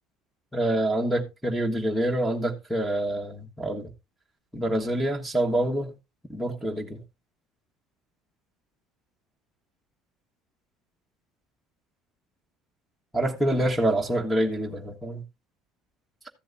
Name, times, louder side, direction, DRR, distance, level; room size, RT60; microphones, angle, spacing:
voice 1, 0.5-3.9 4.5-5.9 6.3-7.0 13.1-15.2, right 1 dB, ahead, 1.4 m, -26 dB
14.0 x 7.6 x 2.7 m
cardioid pair, 120°, 0 cm